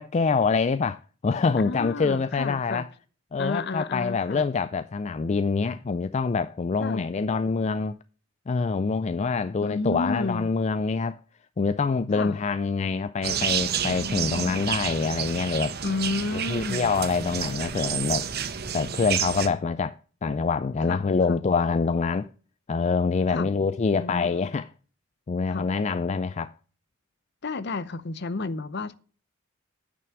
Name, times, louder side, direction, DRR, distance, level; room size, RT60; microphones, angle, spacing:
voice 1, 0.0-2.9 3.3-8.0 8.5-11.2 11.6-15.7 16.3-18.2 18.7-19.9 20.2-22.3 22.7-24.7 25.3-26.5, left 4 dB, 30° left, 0.3 m, -25 dB
voice 2, 1.6-2.9 3.4-4.5 6.8-7.1 9.6-10.5 12.1-12.4 15.8-16.9 20.9-21.4 23.3-23.5 23.9-24.5 25.5-25.7 27.4-28.9, left 3 dB, 50° left, 0.7 m, -31 dB
sound 1, 13.2-19.5, right 8 dB, 50° right, 0.9 m, -30 dB
9.3 x 6.0 x 6.0 m
head